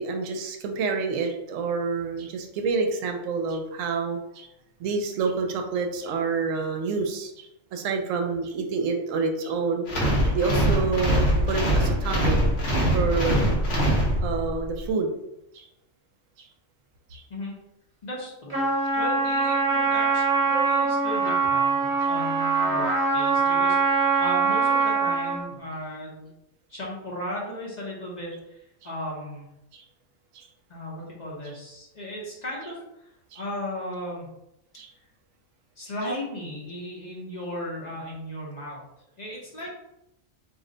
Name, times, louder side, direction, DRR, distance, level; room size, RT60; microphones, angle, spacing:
voice 1, 0.0-4.5 4.8-9.9 10.2-12.5 12.9-13.4 14.2-15.1 15.5-15.7 16.4-16.5 17.1-17.2 22.0-22.1 29.7-29.8 30.3-30.5 33.3-33.4 34.8-34.9, right 4 dB, 75° right, 4 dB, 0.9 m, -28 dB
sound 1, 9.9-14.6, equal, 55° left, 1.0 m, -23 dB
voice 2, 18.0-18.6 19.0-22.9 23.1-23.8 24.2-26.3 26.7-29.5 30.7-33.1 33.3-34.3 35.8-38.8 39.2-39.7, equal, 40° left, -5 dB, 0.7 m, -35 dB
Trumpet, 18.5-25.4, right 4 dB, 30° right, 1.1 m, -23 dB
2.6 x 2.1 x 3.7 m, 0.86 s
omnidirectional pair, 1.4 m